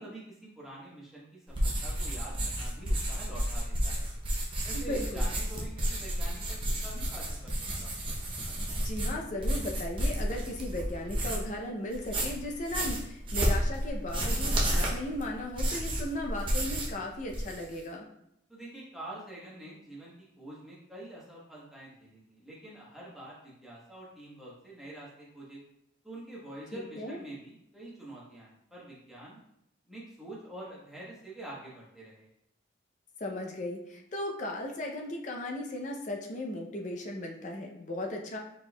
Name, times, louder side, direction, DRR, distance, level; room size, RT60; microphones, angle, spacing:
voice 1, 0.0-4.1 4.6-7.5 7.8-8.0 18.5-25.6 26.0-29.4 29.9-32.3, right 1 dB, ahead, -7 dB, 1.1 m, -46 dB
sound 1, 1.5-11.6 11.9-17.0 17.2-17.8, equal, 25° right, 0.7 m, -31 dB
voice 2, 4.7-5.2 8.7-18.1 26.7-27.2 33.2-38.4, left 1 dB, 40° left, 0 dB, 0.5 m, -36 dB
4.5 x 4.2 x 2.3 m, 0.78 s
head